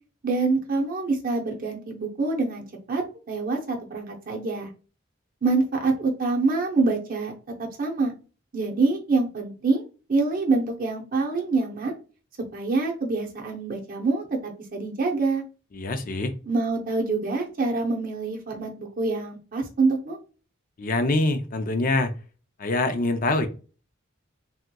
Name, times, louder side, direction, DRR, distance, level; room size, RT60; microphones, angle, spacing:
voice 1, 0.2-4.7 5.4-7.3 7.6-8.1 8.5-9.8 10.1-11.9 12.5-15.4 16.5-20.2, right 3 dB, 45° right, 1 dB, 0.7 m, -26 dB
voice 2, 15.7-16.3 20.8-22.1 22.6-23.5, left 2 dB, 40° left, 7 dB, 0.4 m, -24 dB
3.5 x 2.8 x 2.2 m, 0.35 s
head